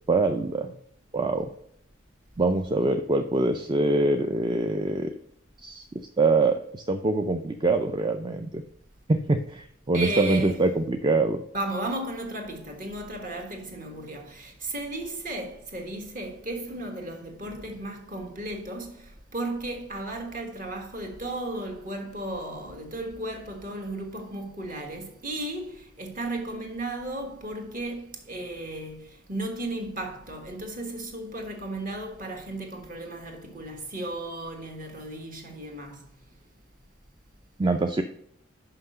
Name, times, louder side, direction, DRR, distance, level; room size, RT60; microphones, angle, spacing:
voice 1, 0.1-0.8 1.1-1.5 2.4-5.1 5.6-5.9 6.2-8.6 9.1-11.4 37.6-38.0, right 2 dB, 25° right, 0.4 m, -24 dB
voice 2, 9.9-10.6 11.5-36.0, right 1 dB, 45° right, 1.6 m, -35 dB
5.8 x 5.7 x 6.5 m
head